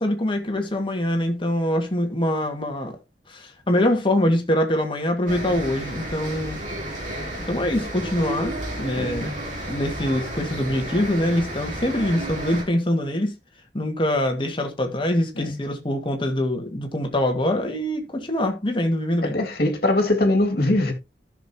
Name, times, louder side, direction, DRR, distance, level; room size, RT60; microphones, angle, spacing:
voice 1, 0.0-3.0 3.3-6.6 7.5-9.3 9.7-13.3 13.7-19.4, left 1 dB, 30° left, 1.9 m, -24 dB
sound 1, 5.3-12.6, right 1 dB, 45° right, 3.5 m, -32 dB
voice 2, 9.0-9.4 15.4-15.6 19.2-20.9, left 2 dB, 55° left, 2.2 m, -22 dB
14.5 x 6.5 x 2.9 m
head